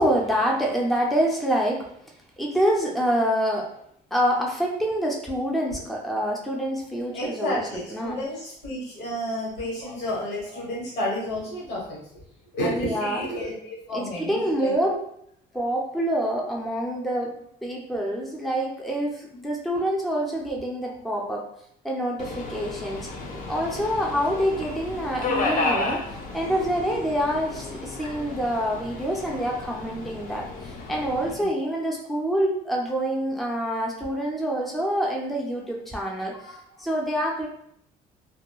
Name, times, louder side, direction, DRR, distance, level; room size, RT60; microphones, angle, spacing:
voice 1, 0.0-1.8 2.4-3.7 4.1-7.6 7.9-8.2 12.7-13.2 13.9-15.0 15.5-21.4 21.8-23.1 23.5-26.0 26.3-37.5, equal, ahead, -2 dB, 0.5 m, -26 dB
voice 2, 7.1-12.2 12.5-14.7 19.7-19.8 22.8-22.9 23.3-23.4 24.9-25.1 31.3-31.5 36.3-36.6, left 1 dB, 85° left, -4 dB, 1.2 m, -31 dB
Subway metro underground, 22.2-31.3, left 3 dB, 55° left, 0.5 m, -32 dB
2.9 x 2.2 x 2.2 m, 0.69 s
cardioid pair, 110°, 17 cm